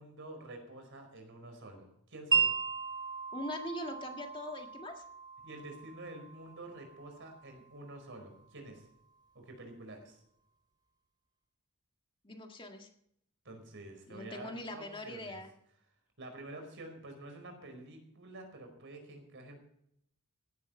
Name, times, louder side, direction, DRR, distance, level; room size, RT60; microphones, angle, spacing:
voice 1, 0.0-2.5 5.4-8.8 9.3-10.2 13.4-15.4 16.2-19.6, right 2 dB, 60° right, 5 dB, 4.9 m, -48 dB
Wind chime, 2.3-8.4, right 6 dB, 20° right, 3.1 m, -36 dB
voice 2, 3.3-5.0 12.2-12.9 14.1-15.5, left 1 dB, 25° left, 3 dB, 1.8 m, -42 dB
16.5 x 11.5 x 4.4 m, 0.72 s
head